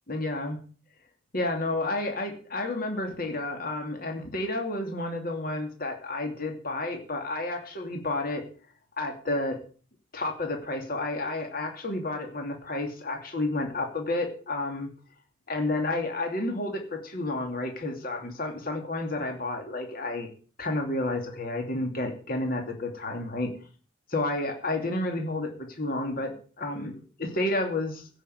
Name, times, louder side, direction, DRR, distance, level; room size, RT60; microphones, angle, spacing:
voice 1, 0.1-0.6 1.3-8.4 9.0-9.6 10.1-14.9 15.5-20.3 20.6-23.5 24.1-28.1, left 2 dB, 50° left, 3 dB, 2.6 m, -31 dB
15.5 x 6.5 x 7.9 m, 0.41 s
head